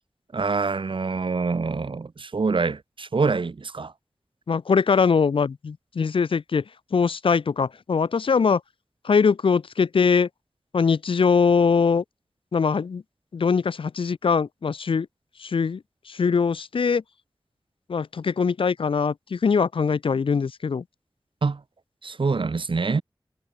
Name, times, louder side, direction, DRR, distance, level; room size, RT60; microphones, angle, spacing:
voice 1, 0.3-3.9 21.4-21.6 22.0-23.0, right 4 dB, 70° right, 2.6 m, -25 dB
voice 2, 4.5-6.6 6.9-8.6 9.0-10.3 10.7-12.0 12.5-13.0 13.3-15.1 15.4-15.8 16.1-17.0 17.9-20.8, left 5 dB, 80° left, 0.6 m, -22 dB
wide cardioid pair, 85°, 9 cm